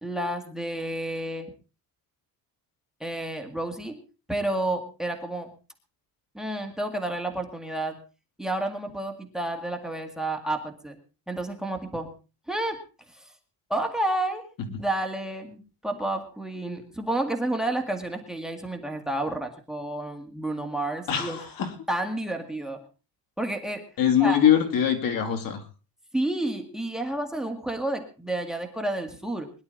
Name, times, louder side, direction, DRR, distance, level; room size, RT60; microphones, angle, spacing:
voice 1, 0.0-1.5 3.0-4.0 4.3-5.5 6.3-8.0 8.4-11.0 11.3-12.1 12.5-12.8 13.1-13.3 13.7-21.4 21.9-22.8 23.4-23.9 24.2-24.4 26.1-29.5, right 1 dB, ahead, 7 dB, 2.0 m, -30 dB
voice 2, 21.1-21.9 24.0-25.6, left 9 dB, 60° left, 7 dB, 2.9 m, -23 dB
21.0 x 11.5 x 4.0 m, 0.33 s
cardioid pair, 130°, 38 cm